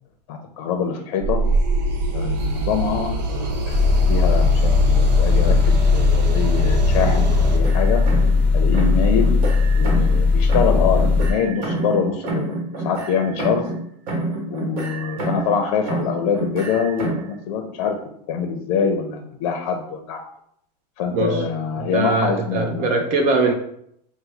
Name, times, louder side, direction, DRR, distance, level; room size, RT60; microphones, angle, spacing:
voice 1, 0.3-1.4 2.1-5.6 5.9-8.0 8.5-9.3 9.7-12.5 12.8-13.6 14.5-17.2 17.5-18.0 18.3-20.2 21.0-22.9, left 6 dB, 50° left, 4 dB, 0.6 m, -24 dB
sound 1, 1.2-7.6, equal, 80° right, 0.9 m, -23 dB
sound 2, 3.7-11.3, left 4 dB, 5° left, 0.8 m, -18 dB
sound 3, 7.0-8.5 8.7-10.2 10.5-13.8 14.1-15.6 15.9-17.3, right 2 dB, 55° right, 1.4 m, -28 dB
voice 2, 21.1-21.5 21.8-23.5, right 3 dB, 35° right, 4 dB, 0.5 m, -21 dB
4.0 x 2.2 x 4.5 m, 0.70 s
supercardioid pair, 140°, 21 cm